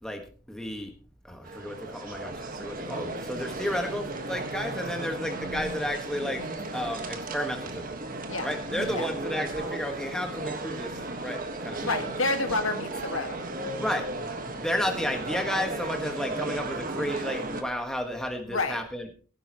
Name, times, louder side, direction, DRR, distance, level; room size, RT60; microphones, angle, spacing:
voice 1, 0.5-0.9 1.2-6.4 6.7-7.9 8.4-11.9 13.7-14.1 14.4-19.2, equal, 5° left, 3 dB, 1.5 m, -32 dB
sound 1, 1.4-17.6, right 2 dB, 40° right, 1.5 m, -35 dB
voice 2, 11.8-13.4 18.5-18.8, left 3 dB, 70° left, 6 dB, 1.8 m, -29 dB
17.0 x 10.5 x 3.0 m, 0.39 s
head